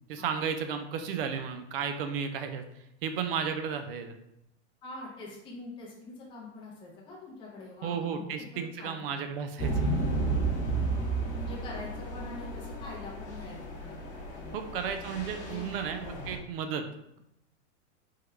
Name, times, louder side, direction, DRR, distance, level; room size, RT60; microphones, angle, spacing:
voice 1, 0.1-2.6 3.0-4.1 7.8-9.9 14.5-16.8, right 7 dB, 55° right, 7 dB, 0.4 m, -33 dB
voice 2, 4.8-9.1 10.1-10.2 11.3-14.0 14.3-15.7 16.0-16.1, left 2 dB, 15° left, -4 dB, 0.6 m, -45 dB
sound 1, 9.6-16.4, right 3 dB, 40° left, 1.0 m, -33 dB
3.6 x 2.2 x 3.1 m, 0.80 s
supercardioid pair, 155°, 35 cm